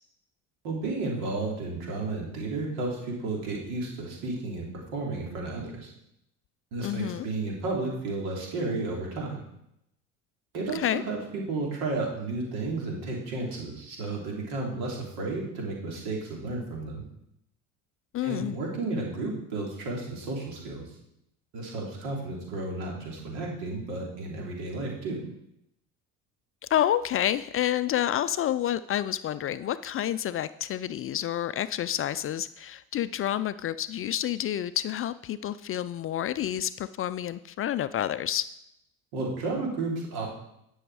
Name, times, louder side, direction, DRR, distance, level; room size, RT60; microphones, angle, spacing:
voice 1, 0.6-5.9 6.7-9.4 10.5-17.0 18.2-20.9 21.5-25.2 39.1-40.3, right 3 dB, 75° right, -2 dB, 3.2 m, -32 dB
voice 2, 6.8-7.3 10.7-11.0 18.1-18.6 26.7-38.5, left 11 dB, 35° left, 14 dB, 0.4 m, -29 dB
10.5 x 6.3 x 4.8 m, 0.80 s
hypercardioid pair, 75°, 38 cm